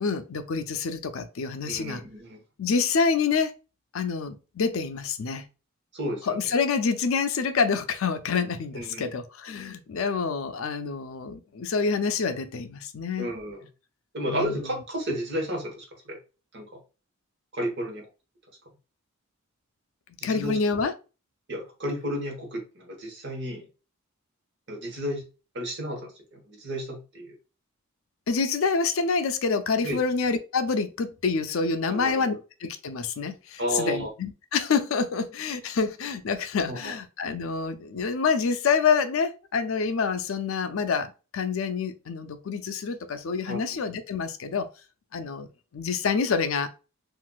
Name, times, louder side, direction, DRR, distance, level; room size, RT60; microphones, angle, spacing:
voice 1, 0.0-2.0 2.6-3.5 3.9-5.4 6.3-13.3 14.3-14.7 20.2-20.9 28.3-32.3 32.6-44.7 45.1-45.5 45.7-46.7, left 5 dB, 70° left, 0.4 m, -27 dB
voice 2, 1.6-2.4 5.9-6.4 8.7-9.2 13.2-13.7 14.1-16.2 16.5-16.8 17.5-18.1 20.2-20.6 21.5-23.7 24.7-25.2 25.5-27.4 29.8-30.0 31.9-32.4 33.6-34.1 36.7-36.9 43.5-43.6, equal, 55° right, 1.1 m, -32 dB
3.8 x 2.5 x 2.2 m
head